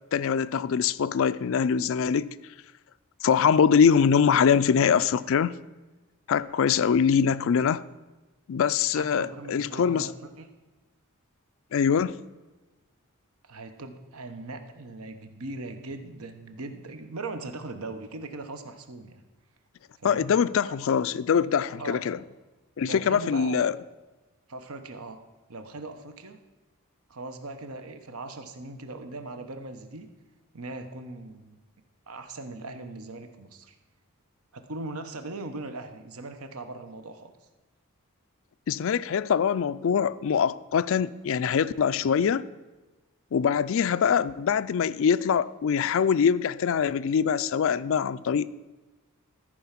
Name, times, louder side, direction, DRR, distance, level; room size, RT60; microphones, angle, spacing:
voice 1, 0.1-2.3 3.2-5.5 6.3-7.8 8.5-10.1 11.7-12.2 20.0-22.2 22.8-23.7 38.7-42.5 43.3-48.5, left 7 dB, 60° left, 0.3 m, -23 dB
voice 2, 8.9-10.5 13.4-19.2 20.0-20.3 21.8-22.0 22.8-23.6 24.5-25.2 25.5-26.4 27.1-30.1 30.5-31.6 32.1-33.7 34.5-37.3, right 2 dB, 75° right, 1.0 m, -39 dB
14.0 x 4.9 x 5.8 m
head